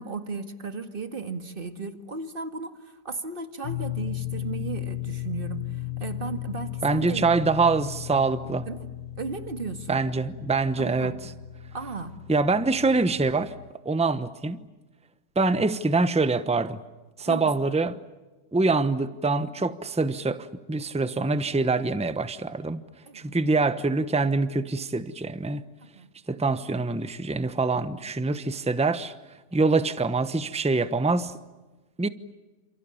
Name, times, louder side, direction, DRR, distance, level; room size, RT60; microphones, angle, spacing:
voice 1, 0.0-7.3 8.7-8.9 9.2-10.0 10.8-11.2 11.7-12.1 17.3-17.6 23.1-23.3 25.8-26.1 29.5-29.6, right 4 dB, 35° right, 2.0 m, -35 dB
sound 1, 3.6-13.7, left 14 dB, 80° left, 2.0 m, -36 dB
voice 2, 6.8-8.6 9.9-11.1 12.3-13.5 13.8-14.6 15.4-16.8 17.2-17.9 18.5-22.8 23.1-25.6 26.3-29.1 29.5-31.3 32.0-32.1, right 3 dB, 5° right, 0.7 m, -25 dB
29.0 x 28.0 x 7.2 m
omnidirectional pair, 1.7 m